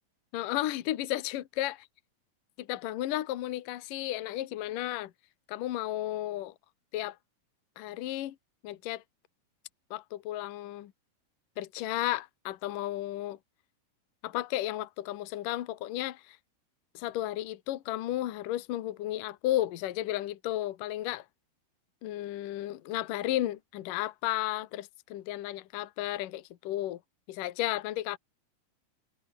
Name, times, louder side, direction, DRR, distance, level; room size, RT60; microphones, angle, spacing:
voice 1, 0.3-1.8 2.6-5.1 5.5-6.5 6.9-7.2 7.8-8.4 8.6-9.0 9.9-10.9 11.6-13.4 14.2-16.4 16.9-21.2 22.0-27.0 27.3-28.2, left 14 dB, 70° left, 2.7 m, -33 dB
omnidirectional pair, 4.3 m